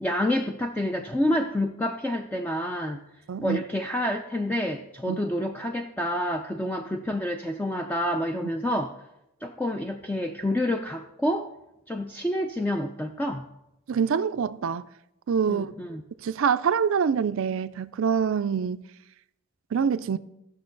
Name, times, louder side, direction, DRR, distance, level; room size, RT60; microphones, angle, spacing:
voice 1, 0.0-3.0 3.4-9.0 9.4-11.5 11.9-13.4 15.5-16.0, left 1 dB, 10° left, 0.3 m, -28 dB
voice 2, 3.3-3.6 5.1-5.2 13.9-14.8 15.3-15.7 16.2-18.8 19.7-20.2, right 6 dB, 65° right, 0.4 m, -25 dB
16.0 x 6.2 x 3.9 m
head